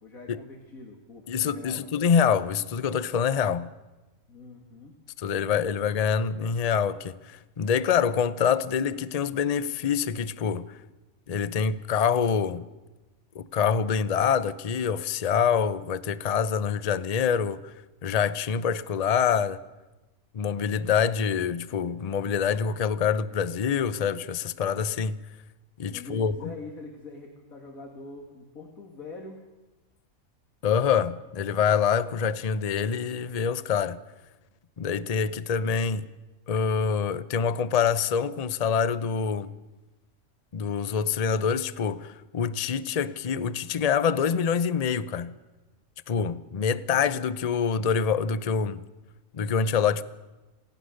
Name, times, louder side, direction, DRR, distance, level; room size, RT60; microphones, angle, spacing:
voice 1, 0.0-1.9 4.3-4.9 25.9-29.4, left 3 dB, 70° left, 2.6 m, -44 dB
voice 2, 1.3-3.7 5.2-10.8 11.3-12.7 13.3-17.7 18.0-19.6 20.3-25.2 25.8-26.3 30.6-34.0 34.8-36.1 36.5-39.5 40.5-45.3 46.1-48.8 49.3-50.0, left 7 dB, 40° left, 0.6 m, -26 dB
27.5 x 17.5 x 6.5 m
omnidirectional pair, 1.5 m